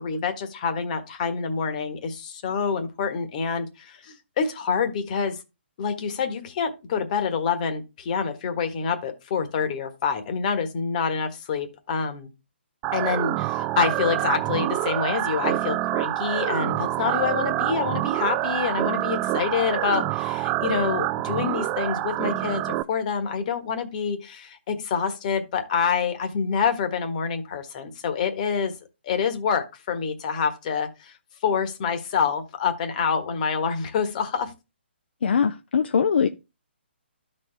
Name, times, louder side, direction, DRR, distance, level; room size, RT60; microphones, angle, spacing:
voice 1, 0.0-5.4 5.8-12.3 12.9-28.7 29.0-31.1 31.4-34.5, left 6 dB, 40° left, 1.4 m, -27 dB
sound 1, 12.8-22.8, right 16 dB, 20° right, 0.4 m, -26 dB
voice 2, 35.2-36.3, left 6 dB, 65° left, 0.6 m, -21 dB
12.5 x 4.3 x 3.3 m
hypercardioid pair, 145°, 6 cm